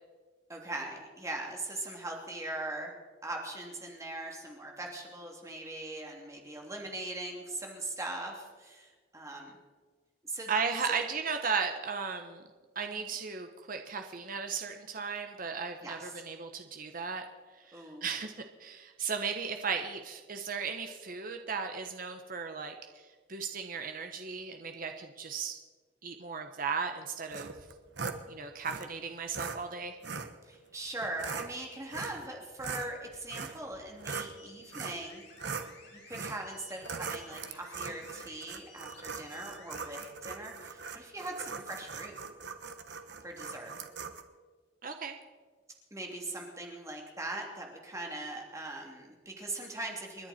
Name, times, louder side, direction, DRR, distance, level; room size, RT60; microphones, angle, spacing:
voice 1, 0.5-2.9 3.2-9.6 10.2-10.5 10.9-11.0 13.1-13.2 15.8-16.2 17.7-18.0 30.4-35.2 35.9-42.1 43.2-43.7 45.9-50.3, right 2 dB, 15° right, 0 dB, 3.0 m, -40 dB
voice 2, 10.5-12.4 12.7-17.3 17.6-18.3 18.6-23.0 23.3-25.6 26.0-27.5 28.3-29.9 44.8-45.2, right 5 dB, 50° right, 6 dB, 1.2 m, -36 dB
sound 1, 27.3-28.2 28.6-28.8 29.3-29.6 30.0-30.3 31.0-31.5 31.9-32.3 32.6-34.3 34.7-35.0 35.4-35.7 36.1-36.4 36.8-44.2, right 5 dB, 70° right, 1.3 m, -40 dB
sound 2, 34.4-40.1, left 3 dB, 70° left, 5.1 m, -56 dB
29.5 x 10.5 x 4.4 m, 1.4 s
head